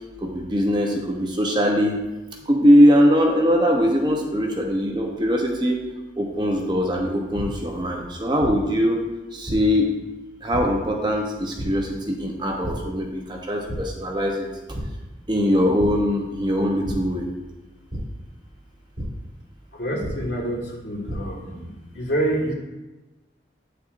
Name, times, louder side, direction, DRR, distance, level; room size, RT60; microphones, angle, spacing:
voice 1, 0.2-2.0 2.5-5.8 6.2-9.0 9.3-10.0 10.4-14.5 15.3-17.3, equal, 25° right, 1 dB, 0.8 m, -21 dB
sound 1, 7.3-7.4 8.4-8.5 9.5-9.6 10.5-10.6 11.6-11.7 12.6-12.7 13.2-13.4 13.7-13.8 14.7-14.8 15.8-15.9 16.8-16.9 17.9-18.0 19.0-19.1 20.0-20.1 20.8-21.2, right 1 dB, 70° right, 2.2 m, -31 dB
voice 2, 19.8-21.7 21.9-22.5, right 1 dB, 75° left, -1 dB, 1.6 m, -27 dB
9.2 x 6.7 x 2.5 m, 1.1 s
head